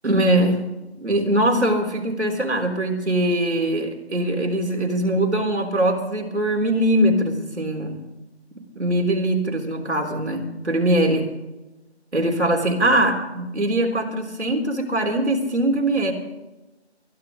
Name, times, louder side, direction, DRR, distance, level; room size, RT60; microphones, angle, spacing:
voice 1, 0.0-0.7 1.0-8.1 8.7-11.3 12.1-16.1, right 1 dB, 85° right, 2 dB, 3.8 m, -22 dB
22.5 x 13.0 x 3.8 m, 1.0 s
figure-of-eight pair, 175°, 33 cm